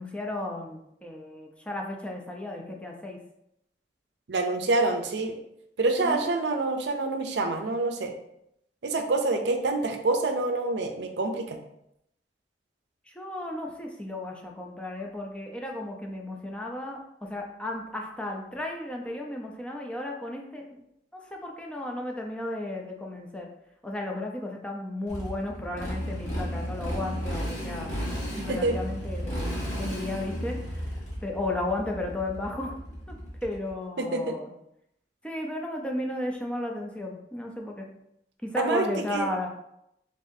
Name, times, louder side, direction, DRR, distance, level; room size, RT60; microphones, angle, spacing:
voice 1, 0.0-3.2 6.0-6.4 13.1-20.8 21.3-23.5 23.8-27.9 28.3-31.0 31.2-32.8 33.1-33.2 33.4-34.5 35.2-37.9 38.4-39.5, left 1 dB, 5° left, 0 dB, 0.5 m, -34 dB
voice 2, 4.3-5.3 5.8-8.1 8.8-11.6 28.5-28.8 34.0-34.4 38.6-38.8 39.1-39.3, right 2 dB, 70° right, 5 dB, 0.5 m, -26 dB
Motorcycle, 25.1-33.7, equal, 40° left, 1.5 m, -33 dB
4.0 x 3.6 x 2.6 m, 0.79 s
head